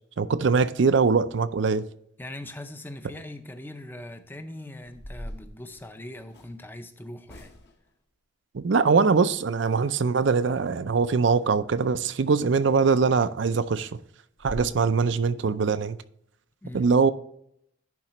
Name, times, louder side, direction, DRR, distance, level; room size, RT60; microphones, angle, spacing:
voice 1, 0.2-1.8 8.5-13.9 14.4-16.0 16.7-17.1, right 5 dB, 60° right, 0.5 m, -22 dB
voice 2, 2.2-7.5 14.5-14.9 16.6-17.0, left 1 dB, 10° left, 0.5 m, -41 dB
sound 1, 4.2-4.3 4.8-6.6 7.3-7.9 12.4-12.6 13.0-13.1 13.5-13.6 14.0-14.1 14.4-14.7, equal, 55° left, 1.2 m, -42 dB
11.0 x 4.9 x 3.0 m
head